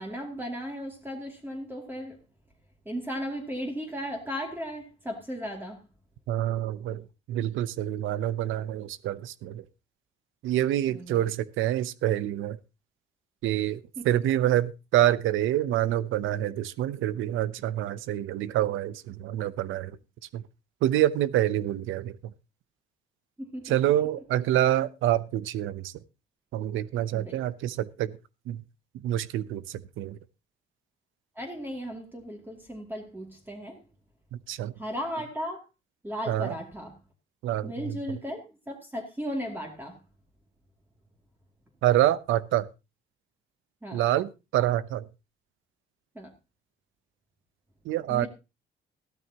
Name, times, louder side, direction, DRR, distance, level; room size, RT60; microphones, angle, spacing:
voice 1, 0.0-2.2 2.9-5.8 10.9-11.3 14.0-14.2 23.4-23.9 27.1-27.4 31.4-33.8 34.8-35.7 36.0-37.0 37.6-40.0 43.8-44.0 46.1-46.3 48.1-48.3, equal, 10° right, 2.5 m, -36 dB
voice 2, 6.3-9.6 10.4-12.6 13.4-19.9 20.3-20.4 20.8-22.3 23.6-25.9 26.5-28.2 28.5-28.6 28.9-30.2 34.3-34.7 36.3-36.5 37.4-38.0 41.8-42.7 43.9-45.1 47.8-48.3, right 13 dB, 85° right, 0.7 m, -27 dB
15.0 x 12.5 x 2.9 m
cardioid pair, 90°, 20 cm